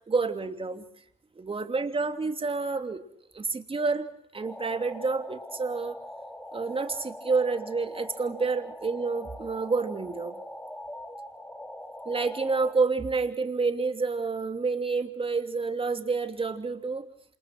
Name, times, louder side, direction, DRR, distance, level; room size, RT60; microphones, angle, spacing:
voice 1, 0.1-0.8 1.4-3.0 3.3-4.1 4.3-6.0 6.5-10.4 12.0-17.1, right 4 dB, 25° right, 7 dB, 2.8 m, -29 dB
sound 1, 4.4-12.7, left 1 dB, 5° left, 3.1 m, -42 dB
28.0 x 27.5 x 6.0 m, 0.70 s
cardioid pair, 90°, 20 cm